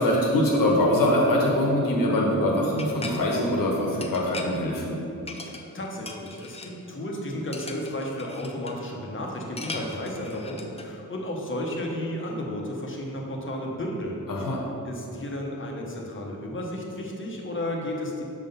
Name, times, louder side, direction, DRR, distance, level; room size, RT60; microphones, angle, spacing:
voice 1, 0.0-4.9 14.3-14.6, left 1 dB, 80° left, -2 dB, 1.3 m, -23 dB
sound 1, 2.8-3.2 4.0-4.6 5.3-5.8 6.1-6.7 7.5-8.8 9.6-10.8, left 3 dB, 20° left, 0.4 m, -39 dB
voice 2, 5.4-14.3 14.8-18.2, left 1 dB, 35° left, -1 dB, 0.9 m, -33 dB
6.4 x 3.8 x 5.4 m, 2.8 s
wide cardioid pair, 155°, 33 cm